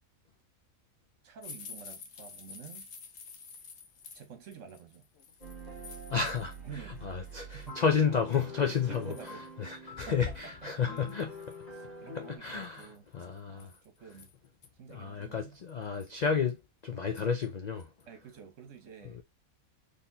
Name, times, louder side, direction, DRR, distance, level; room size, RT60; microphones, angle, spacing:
voice 1, 1.2-2.9 4.1-5.1 6.6-7.3 7.5-8.0 8.6-9.5 10.1-10.3 10.6-11.2 11.7-13.1 13.5-14.3 14.8-15.6 18.1-19.2, right 7 dB, 65° right, 1.4 m, -49 dB
sound 1, 1.4-6.8 7.1-7.7 8.3-8.4 8.7-9.5 10.0-10.1 10.3-10.4 11.0-11.6 12.6-14.7 15.2-15.3 15.7-16.2 17.1-17.5 17.8-18.0 18.4-18.5, left 5 dB, 60° left, 1.1 m, -50 dB
sound 2, 5.4-12.4, equal, 30° left, 1.8 m, -46 dB
voice 2, 6.1-11.3 12.1-12.9 13.1-13.7 14.9-17.9 19.1-19.2, left 6 dB, 85° left, 0.3 m, -31 dB
4.1 x 3.3 x 2.7 m
omnidirectional pair, 1.5 m